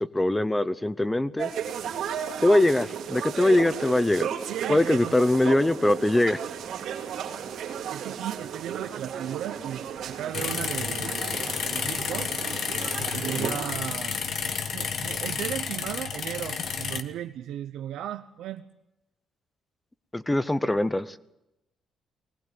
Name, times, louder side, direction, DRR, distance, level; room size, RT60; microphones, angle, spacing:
voice 1, 0.0-1.5 2.4-4.3 4.7-6.4 13.4-13.5 20.1-21.2, left 1 dB, 10° left, 16 dB, 0.7 m, -22 dB
sound 1, 1.4-13.7, right 8 dB, 65° right, 3.1 m, -34 dB
voice 2, 4.5-5.2 7.9-12.3 13.0-14.2 14.6-18.7, right 11 dB, 90° right, 6 dB, 0.9 m, -36 dB
sound 2, 10.3-17.0, left 6 dB, 45° left, 1.4 m, -31 dB
20.5 x 18.5 x 9.3 m, 0.91 s
cardioid pair, 170°, 0 cm